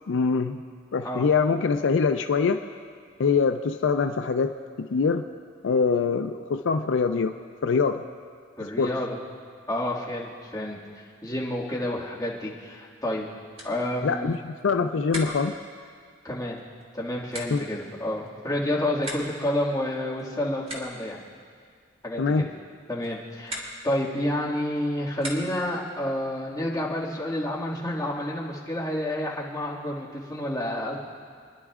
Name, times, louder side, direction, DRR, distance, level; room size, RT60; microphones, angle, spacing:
voice 1, 0.1-0.6 0.9-2.6 3.2-5.2 5.6-7.3 7.6-8.0 8.8-8.9 14.0-15.6 17.5-17.6 22.2-22.5, left 5 dB, 75° left, 7 dB, 0.4 m, -24 dB
voice 2, 8.6-9.2 9.7-10.8 11.2-13.2 13.6-14.4 16.2-16.6 16.9-21.2 22.0-22.5 22.9-31.0, left 1 dB, 20° left, -7 dB, 2.0 m, -29 dB
sound 1, 13.5-25.8, equal, 30° right, 2.2 m, -43 dB
30.0 x 11.0 x 2.4 m, 2.1 s
head